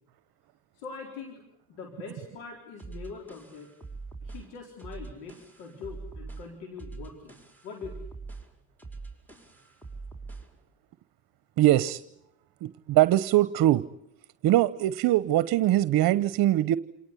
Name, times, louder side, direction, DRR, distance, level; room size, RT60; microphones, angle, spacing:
voice 1, 0.7-1.4 1.7-3.7 4.2-7.4 7.6-8.1, left 5 dB, 85° left, 2 dB, 4.3 m, -42 dB
sound 1, 2.8-10.6, right 4 dB, 5° left, 4.9 m, -43 dB
voice 2, 11.6-12.0 12.6-13.8 14.4-16.8, right 14 dB, 60° right, 16 dB, 0.9 m, -22 dB
28.0 x 18.5 x 9.7 m, 0.81 s
supercardioid pair, 80°, 40 cm